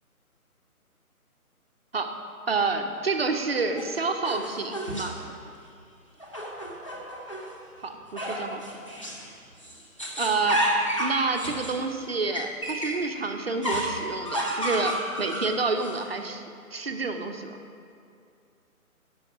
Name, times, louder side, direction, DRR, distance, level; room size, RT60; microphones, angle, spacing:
voice 1, 2.5-5.1 7.8-8.6 9.1-9.3 10.2-10.6 11.0-16.4 16.7-17.6, right 3 dB, 40° right, 5 dB, 0.7 m, -28 dB
sound 1, 3.8-5.3 6.2-7.5 8.2-9.3 9.6-13.0 13.6-16.0, equal, 20° left, 0.6 m, -31 dB
9.3 x 6.3 x 6.0 m, 2.4 s
figure-of-eight pair, 165°, 45 cm